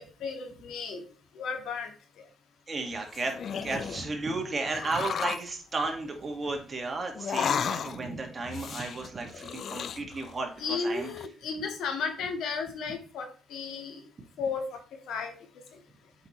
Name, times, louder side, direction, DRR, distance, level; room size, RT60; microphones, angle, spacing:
voice 1, 0.2-1.0 1.4-1.9 4.7-4.9 10.6-14.0 14.4-14.8 15.1-15.3, left 5 dB, 80° left, 4 dB, 1.9 m, -34 dB
voice 2, 2.7-11.1, right 3 dB, 35° right, 2 dB, 2.1 m, -34 dB
sound 1, 2.9-4.1 4.8-5.5 7.2-8.1 8.5-10.4 10.7-11.3, left 8 dB, 55° left, 0.3 m, -34 dB
7.8 x 5.6 x 3.3 m, 0.39 s
cardioid pair, 90°, 0 cm